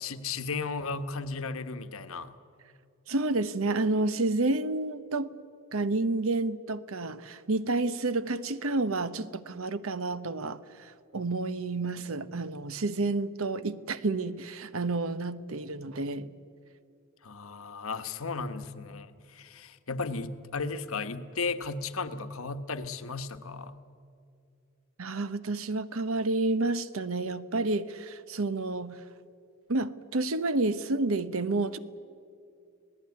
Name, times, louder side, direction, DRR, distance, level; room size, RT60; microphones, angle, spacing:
voice 1, 0.0-2.3 17.2-23.8, left 4 dB, 65° left, 1.2 m, -35 dB
voice 2, 3.1-5.3 5.7-16.3 25.0-29.0 29.7-31.8, right 2 dB, 65° right, 1.0 m, -30 dB
26.0 x 18.0 x 9.6 m
head